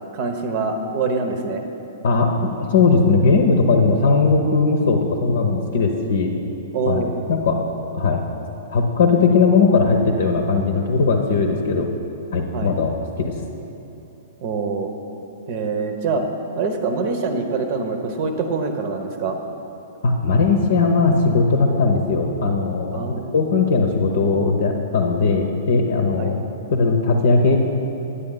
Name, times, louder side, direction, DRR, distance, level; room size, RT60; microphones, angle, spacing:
voice 1, 0.1-1.6 6.7-7.1 12.5-12.7 14.4-14.9 15.5-16.3 16.6-19.4 22.9-23.4 26.2-26.3, right 4 dB, 45° right, 6 dB, 0.9 m, -24 dB
voice 2, 2.0-6.3 6.9-7.0 7.3-7.6 7.9-8.2 8.7-11.9 12.3-13.3 20.0-23.0 23.3-26.4 26.7-27.6, left 4 dB, 60° left, 3 dB, 0.7 m, -18 dB
9.8 x 8.1 x 3.8 m, 2.9 s
figure-of-eight pair, 110°, 0 cm